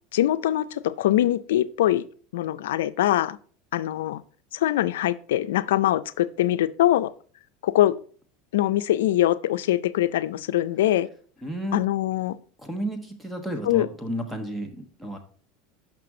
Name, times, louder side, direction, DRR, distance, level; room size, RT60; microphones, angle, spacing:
voice 1, 0.1-2.1 2.3-3.4 3.7-4.2 4.5-7.1 7.6-8.0 8.5-11.1 11.7-12.4 13.7-13.9, left 13 dB, 85° left, 0.4 m, -23 dB
voice 2, 11.4-11.8 12.6-15.2, right 1 dB, 5° right, 1.2 m, -32 dB
5.9 x 5.9 x 3.7 m
supercardioid pair, 115°, 0 cm